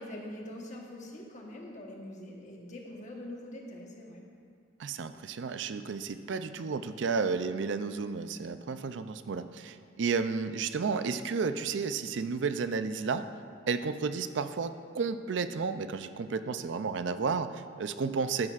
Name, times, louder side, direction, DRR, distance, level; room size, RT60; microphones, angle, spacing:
voice 1, 0.0-4.2, left 1 dB, 40° left, -1 dB, 1.2 m, -43 dB
voice 2, 4.8-13.3 13.7-18.5, right 5 dB, 70° right, 11 dB, 0.4 m, -32 dB
12.5 x 9.7 x 2.5 m, 2.3 s
head